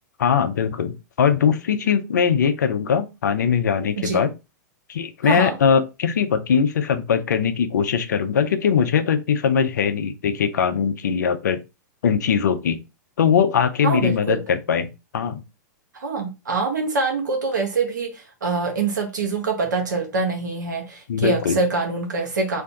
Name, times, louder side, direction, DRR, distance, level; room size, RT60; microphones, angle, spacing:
voice 1, 0.2-4.3 4.9-11.6 12.0-12.8 13.2-15.4 21.1-21.6, left 7 dB, 70° left, 0.5 m, -21 dB
voice 2, 5.2-5.6 13.8-14.4 15.9-22.6, right 3 dB, 75° right, 0.8 m, -25 dB
2.6 x 2.2 x 3.8 m
figure-of-eight pair, 100°, 10 cm